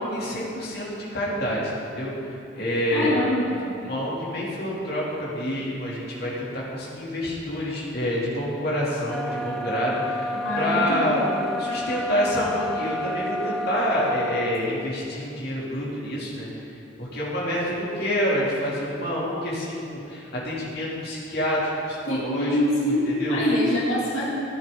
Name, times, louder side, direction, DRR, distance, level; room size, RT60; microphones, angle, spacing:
voice 1, 0.0-3.2 3.8-11.2 11.6-23.4, equal, 55° left, -6 dB, 2.8 m, -28 dB
voice 2, 2.9-3.7 10.3-11.4 22.1-24.2, left 1 dB, 90° left, -6 dB, 2.4 m, -24 dB
sound 1, 9.1-14.6, equal, ahead, 0.5 m, -30 dB
14.5 x 10.5 x 3.8 m, 2.8 s
head